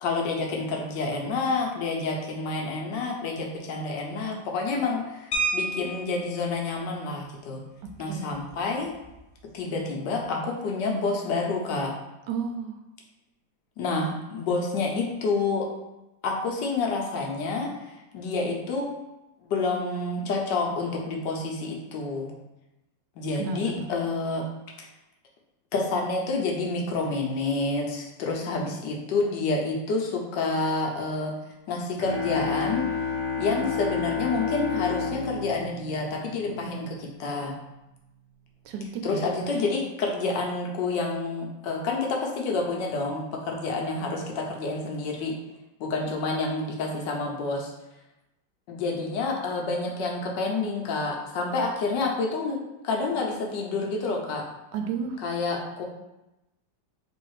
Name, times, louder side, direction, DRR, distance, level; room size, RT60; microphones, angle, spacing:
voice 1, 0.0-7.6 8.0-8.9 9.5-11.9 13.8-15.7 16.2-18.9 19.4-22.3 23.2-24.4 24.8-24.9 25.7-31.3 31.7-33.0 33.4-37.5 39.0-45.3 45.8-47.7 48.7-52.6 52.8-54.4 55.2-55.8, left 3 dB, 75° left, 0 dB, 1.4 m, -28 dB
sound 1, 5.3-6.4 7.8-8.0 8.3-8.5 8.9-9.2, right 2 dB, 55° left, 0.9 m, -30 dB
voice 2, 8.1-8.4 12.3-12.7 23.4-23.9 38.7-39.3 54.7-55.2, right 5 dB, 75° right, 4 dB, 1.1 m, -32 dB
sound 2, 32.0-36.7, left 5 dB, 55° right, 0.3 m, -30 dB
3.5 x 3.1 x 4.7 m, 0.95 s
omnidirectional pair, 2.0 m